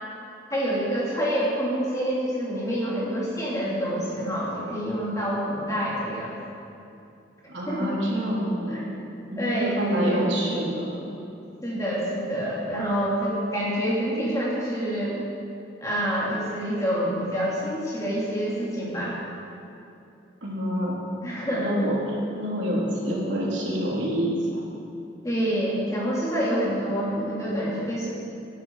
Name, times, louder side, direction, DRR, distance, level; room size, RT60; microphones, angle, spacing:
voice 1, 0.5-6.4 7.7-7.9 8.7-8.9 9.4-10.4 11.6-15.2 15.8-19.2 21.2-21.7 25.2-28.1, equal, 15° left, -6 dB, 2.9 m, -27 dB
voice 2, 7.5-8.8 9.3-11.0 20.4-21.0 21.6-24.6, equal, 70° right, -4 dB, 3.1 m, -27 dB
18.0 x 10.0 x 4.7 m, 2.7 s
head